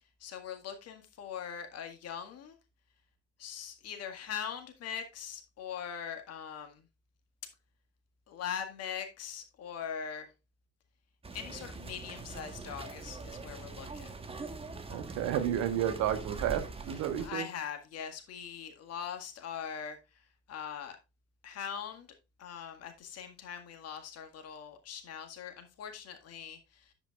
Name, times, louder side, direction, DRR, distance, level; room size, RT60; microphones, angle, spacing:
voice 1, 0.2-2.6 3.4-6.9 8.3-10.3 11.3-14.1 16.9-21.0 21.4-22.1 22.4-26.9, left 8 dB, 45° left, 1.9 m, -41 dB
sound 1, 11.2-17.3, right 3 dB, 15° right, 1.4 m, -43 dB
voice 2, 14.9-17.4, right 10 dB, 50° right, 1.4 m, -31 dB
9.9 x 8.1 x 2.4 m
figure-of-eight pair, 60°, 36 cm